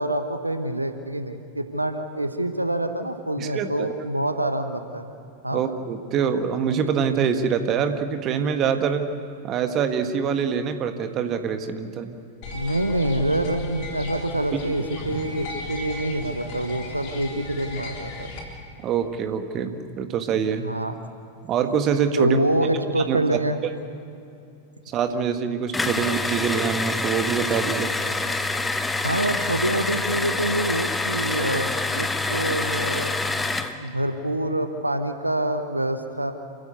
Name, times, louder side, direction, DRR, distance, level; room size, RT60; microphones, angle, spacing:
voice 1, 0.0-5.1 5.4-5.6 12.5-18.3 20.6-20.9 22.2-23.6 29.0-33.1 33.8-36.3, right 1 dB, 85° right, 8 dB, 1.1 m, -26 dB
voice 2, 3.4-3.9 5.5-9.1 9.4-12.2 14.5-14.6 18.8-20.7 21.4-22.4 23.0-23.2 24.9-27.9, right 7 dB, 35° right, 8 dB, 1.5 m, -25 dB
sound 1, 12.4-18.4, left 2 dB, 45° left, 3.7 m, -36 dB
sound 2, 25.7-33.8, left 3 dB, 10° left, 1.1 m, -26 dB
28.0 x 15.5 x 8.2 m, 2.7 s
figure-of-eight pair, 90°, 0 cm